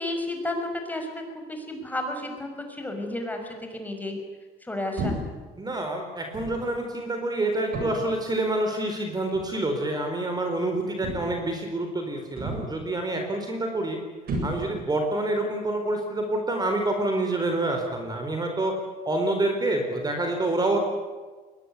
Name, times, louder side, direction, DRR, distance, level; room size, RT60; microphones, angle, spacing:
voice 1, 0.0-4.2 4.6-5.2, left 1 dB, 10° left, 3 dB, 6.0 m, -32 dB
sound 1, 5.0-5.4 6.3-6.7 7.7-8.2 9.3-9.5 11.0-11.5 12.4-12.9 14.3-15.0, right 1 dB, 60° right, 7.8 m, -32 dB
voice 2, 5.6-14.0 14.4-18.8 19.0-20.8, right 2 dB, 25° right, 4 dB, 4.4 m, -27 dB
22.0 x 19.5 x 9.8 m, 1.4 s
cardioid pair, 110°, 17 cm